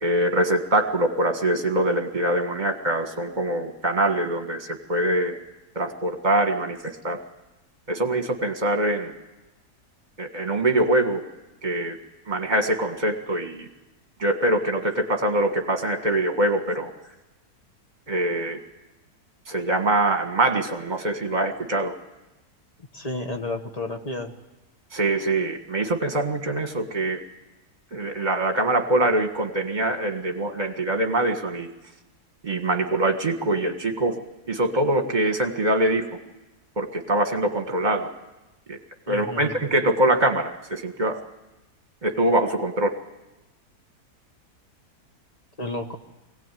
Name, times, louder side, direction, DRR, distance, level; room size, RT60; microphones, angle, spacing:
voice 1, 0.0-5.4 5.8-7.2 7.9-9.1 10.2-11.2 11.6-12.0 12.3-13.7 14.2-16.9 18.1-18.6 19.5-21.9 24.9-27.2 27.9-31.7 32.4-34.2 34.5-36.1 36.8-38.1 38.7-38.8 39.1-41.2 42.0-42.9, right 1 dB, 30° right, 5 dB, 1.8 m, -23 dB
voice 2, 22.9-24.3 39.1-39.5 45.6-46.0, left 2 dB, 25° left, 4 dB, 1.4 m, -31 dB
22.0 x 17.5 x 9.3 m, 1.1 s
omnidirectional pair, 1.7 m